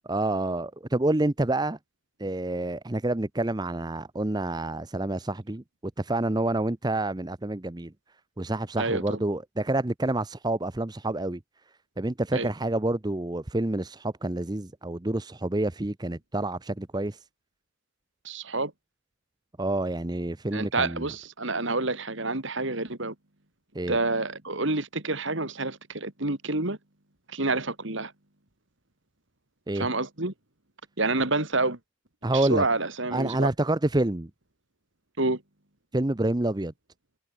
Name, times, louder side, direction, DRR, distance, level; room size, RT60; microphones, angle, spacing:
voice 1, 0.1-1.8 2.2-5.6 6.0-7.9 8.4-11.4 12.0-17.2 19.6-21.1 23.7-24.0 29.7-29.9 32.2-32.6 33.1-34.3 35.9-36.7, right 2 dB, 20° right, 0.7 m, -28 dB
voice 2, 8.8-9.2 12.3-12.5 18.2-18.7 20.5-23.1 23.9-26.8 27.3-28.1 29.7-30.3 31.0-31.8 32.3-33.5 35.2-35.4, right 2 dB, 60° right, 2.7 m, -28 dB
head